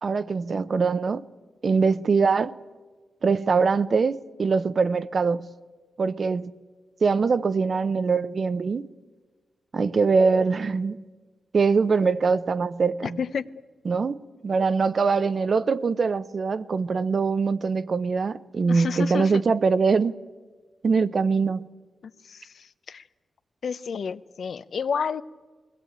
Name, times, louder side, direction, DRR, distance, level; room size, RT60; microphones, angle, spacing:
voice 1, 0.0-1.2 1.6-2.5 3.2-5.5 6.0-6.5 7.0-8.8 9.7-11.0 11.5-13.2 13.9-14.2 14.4-20.1 20.8-21.6, right 4 dB, 50° right, 0.7 m, -23 dB
voice 2, 13.2-13.5 18.7-19.4 22.2-23.0 23.6-25.2, left 6 dB, 65° left, 0.7 m, -30 dB
21.5 x 16.5 x 8.8 m
cardioid pair, 75°, 0 cm